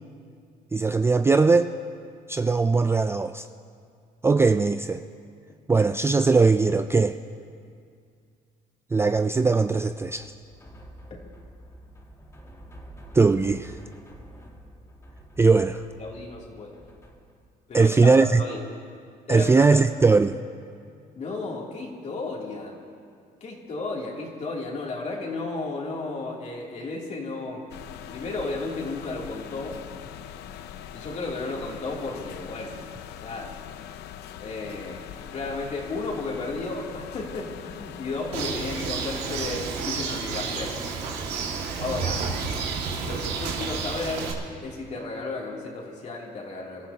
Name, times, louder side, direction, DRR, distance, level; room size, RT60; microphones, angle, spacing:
voice 1, 0.7-1.7 2.3-3.5 4.2-5.0 5.7-7.2 8.9-10.3 13.1-13.8 15.4-15.8 17.7-18.4 19.3-20.4, right 4 dB, 15° right, 9 dB, 0.4 m, -20 dB
sound 1, 10.0-17.5, right 1 dB, 15° left, 2.2 m, -48 dB
voice 2, 16.0-16.8 17.7-18.6 19.3-19.7 21.1-22.8 23.4-27.7 28.1-29.8 30.9-32.8 33.2-33.6 34.4-35.1 35.3-40.8 41.8-42.3 43.0-44.3 44.6-46.9, left 3 dB, 45° left, -2 dB, 2.9 m, -33 dB
sound 2, 27.7-38.5, left 10 dB, 80° left, 0.7 m, -41 dB
Bird, 38.3-44.3, right 5 dB, 85° right, 2.1 m, -30 dB
28.0 x 14.0 x 2.9 m, 2.3 s
cardioid pair, 110°, 17 cm